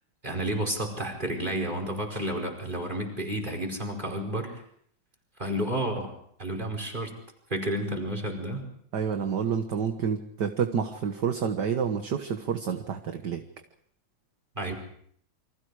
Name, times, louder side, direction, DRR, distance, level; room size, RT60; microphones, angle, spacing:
voice 1, 0.2-4.6 5.4-6.1 6.4-7.1 7.5-8.6 14.6-14.7, right 1 dB, 20° right, 1 dB, 5.2 m, -31 dB
voice 2, 8.9-13.4, right 7 dB, 55° right, 6 dB, 1.9 m, -29 dB
29.5 x 24.5 x 4.9 m, 0.65 s
omnidirectional pair, 2.3 m